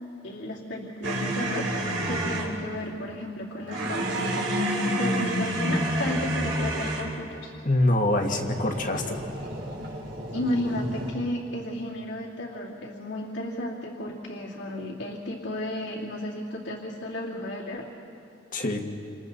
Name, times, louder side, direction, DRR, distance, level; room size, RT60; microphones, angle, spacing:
voice 1, 0.2-4.6 5.0-7.5 10.3-17.9, left 1 dB, 75° left, -7 dB, 2.7 m, -33 dB
sound 1, 1.0-2.5 3.7-7.2 8.1-11.1, right 1 dB, 70° right, 4.0 m, -29 dB
voice 2, 7.6-9.2 18.5-18.8, left 1 dB, 45° left, 3 dB, 1.8 m, -24 dB
29.0 x 28.0 x 4.1 m, 2.7 s
head